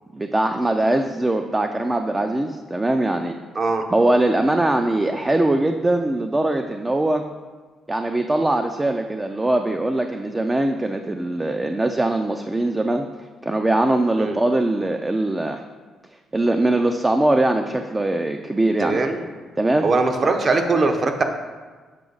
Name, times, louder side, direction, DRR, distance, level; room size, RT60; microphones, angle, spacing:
voice 1, 0.1-3.4 3.9-7.2 7.9-13.1 13.4-15.6 16.3-19.1 19.6-19.9, right 1 dB, 15° right, 5 dB, 0.4 m, -21 dB
voice 2, 18.8-19.2 19.8-21.2, right 3 dB, 40° right, 5 dB, 0.8 m, -21 dB
7.4 x 5.0 x 3.9 m, 1.4 s
cardioid pair, 90°, 0 cm